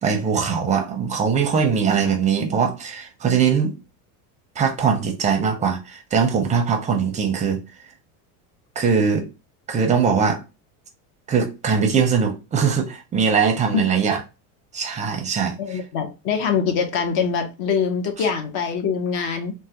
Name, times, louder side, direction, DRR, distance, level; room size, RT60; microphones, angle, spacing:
voice 1, 0.0-3.8 4.6-7.6 8.8-9.3 9.7-10.4 11.3-14.2 14.7-15.8, right 6 dB, 15° right, 0.5 m, -21 dB
voice 2, 15.6-19.5, left 6 dB, 50° left, 0.9 m, -23 dB
3.2 x 2.2 x 2.8 m
supercardioid pair, 140°, 45 cm